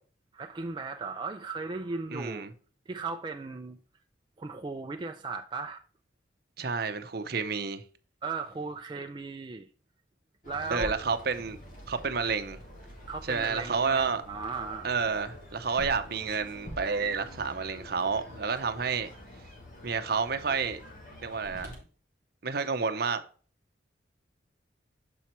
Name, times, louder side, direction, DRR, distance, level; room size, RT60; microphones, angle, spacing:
voice 1, 0.3-2.5 2.9-3.8 4.4-5.8 8.2-9.7 10.4-11.0 13.1-14.9, right 4 dB, 25° right, 0.4 m, -36 dB
voice 2, 2.1-2.5 6.6-7.8 10.7-11.6 11.9-12.6 13.3-14.2 14.8-19.1 19.8-20.8 21.2-21.8 22.4-23.2, right 5 dB, 55° right, 0.7 m, -30 dB
sound 1, 10.4-21.8, equal, 45° left, 1.9 m, -46 dB
7.0 x 4.4 x 4.2 m
head